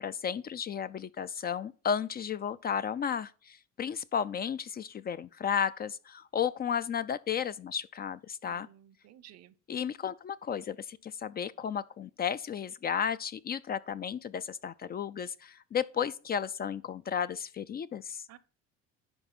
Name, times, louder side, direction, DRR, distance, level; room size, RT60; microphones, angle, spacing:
voice 1, 0.0-8.7 9.7-18.2, left 8 dB, 35° left, 0.4 m, -33 dB
voice 2, 8.5-9.5 18.3-18.4, right 12 dB, 60° right, 0.8 m, -55 dB
10.5 x 3.6 x 5.9 m
cardioid pair, 100°, 29 cm